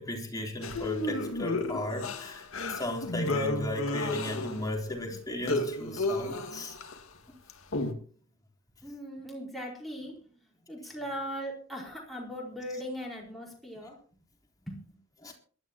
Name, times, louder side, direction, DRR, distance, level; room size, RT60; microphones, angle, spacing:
voice 1, 0.0-6.8 15.2-15.3, left 1 dB, 20° left, 3.7 m, -36 dB
sound 1, 0.6-4.8 5.1-7.0 7.5-7.9, left 2 dB, 85° left, 2.1 m, -32 dB
voice 2, 8.8-10.4 10.7-14.0 14.7-14.8, equal, ahead, 4.8 m, -39 dB
22.5 x 12.5 x 3.0 m
head